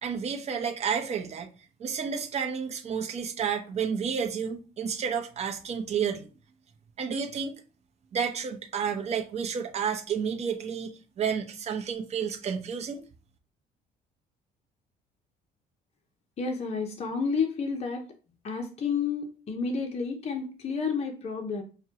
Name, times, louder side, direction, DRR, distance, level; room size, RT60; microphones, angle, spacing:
voice 1, 0.0-1.5 1.8-6.3 7.0-7.6 8.1-13.0, right 7 dB, 40° right, 0.7 m, -31 dB
voice 2, 16.4-18.0 18.4-21.6, left 5 dB, 40° left, 0.7 m, -30 dB
5.8 x 2.2 x 2.8 m
cardioid pair, 110°, 17 cm